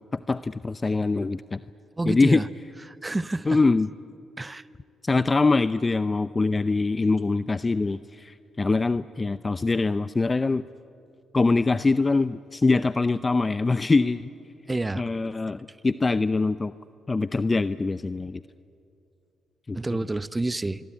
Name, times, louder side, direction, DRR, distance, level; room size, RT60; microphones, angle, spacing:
voice 1, 0.1-1.6 2.1-2.4 3.5-3.9 5.0-10.6 11.3-14.3 14.9-16.7 17.1-18.4 19.7-19.8, left 3 dB, 30° left, 15 dB, 0.6 m, -23 dB
voice 2, 2.0-2.5 2.9-3.6 4.4-4.6 14.7-15.0 19.7-20.8, right 2 dB, 20° right, 16 dB, 0.9 m, -28 dB
27.0 x 22.5 x 8.9 m, 2.6 s
supercardioid pair, 60°, 0 cm